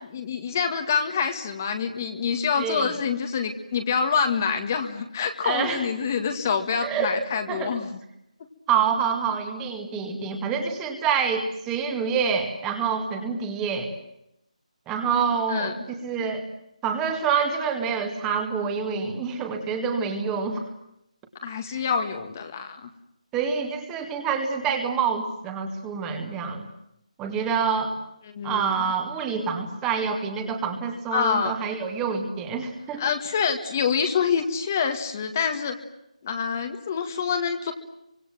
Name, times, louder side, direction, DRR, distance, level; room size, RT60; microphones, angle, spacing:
voice 1, 0.1-7.9 15.5-15.7 21.4-22.9 28.3-28.9 31.1-31.6 33.0-35.8 36.2-37.7, left 6 dB, 25° left, 6 dB, 1.8 m, -26 dB
voice 2, 2.6-2.9 5.4-5.8 6.8-7.1 7.5-7.7 8.7-13.9 14.9-16.4 16.8-20.6 21.7-21.8 23.3-26.7 27.2-28.0 28.4-33.1, right 6 dB, 10° right, 5 dB, 2.1 m, -27 dB
29.5 x 25.0 x 7.7 m, 0.80 s
figure-of-eight pair, 175°, 4 cm